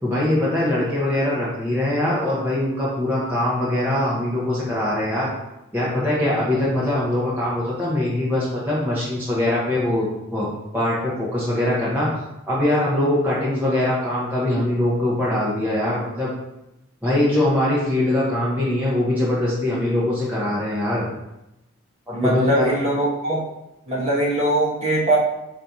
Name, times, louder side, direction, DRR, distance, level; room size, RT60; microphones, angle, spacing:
voice 1, 0.0-5.3 5.7-10.5 10.7-12.1 12.5-16.3 17.0-21.1 22.1-22.7, left 1 dB, 10° right, -8 dB, 0.9 m, -22 dB
voice 2, 22.1-23.4 23.9-25.2, right 1 dB, 30° right, -5 dB, 1.2 m, -21 dB
4.3 x 2.7 x 4.6 m, 0.89 s
head